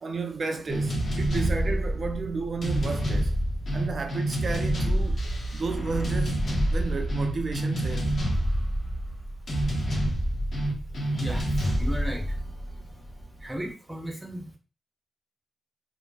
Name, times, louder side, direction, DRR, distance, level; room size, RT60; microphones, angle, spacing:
voice 1, 0.0-3.3 3.7-5.2 5.5-6.4 6.7-8.1, right 4 dB, 55° right, 0.4 m, -32 dB
sound 1, 0.7-13.4, right 1 dB, 60° left, 0.9 m, -27 dB
voice 2, 11.8-12.2 13.4-14.5, equal, 15° right, 0.7 m, -34 dB
2.5 x 2.5 x 2.2 m
cardioid pair, 65°, 0 cm